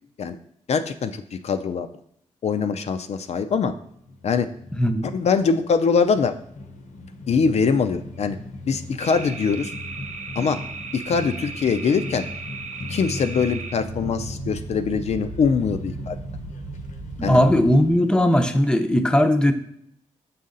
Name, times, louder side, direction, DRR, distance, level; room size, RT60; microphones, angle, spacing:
voice 1, 0.7-1.9 2.4-3.7 4.2-4.5 5.1-6.3 7.3-8.4 8.7-9.7 10.4-10.6 10.9-12.3 12.9-16.2 17.2-17.4, left 5 dB, 60° left, 8 dB, 0.4 m, -23 dB
sound 1, 3.7-18.2, left 2 dB, 75° left, 0.8 m, -39 dB
voice 2, 4.7-5.1 17.2-19.5, left 1 dB, 5° left, 7 dB, 0.6 m, -18 dB
sound 2, 9.0-17.7, right 3 dB, 65° right, 0.7 m, -36 dB
6.2 x 4.1 x 3.8 m, 0.71 s
cardioid pair, 70°, 13 cm